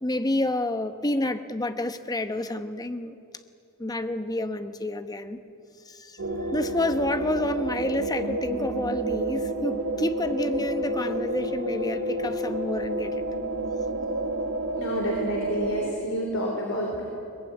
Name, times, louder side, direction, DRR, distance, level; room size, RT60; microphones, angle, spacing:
voice 1, 0.0-3.1 3.8-5.4 5.9-13.2 14.1-14.2, left 1 dB, 15° left, 10 dB, 0.9 m, -29 dB
sound 1, 6.2-15.9, right 1 dB, 70° right, 2.3 m, -30 dB
voice 2, 14.7-17.0, equal, 60° left, 0 dB, 3.6 m, -29 dB
22.5 x 20.5 x 9.4 m, 2.7 s
head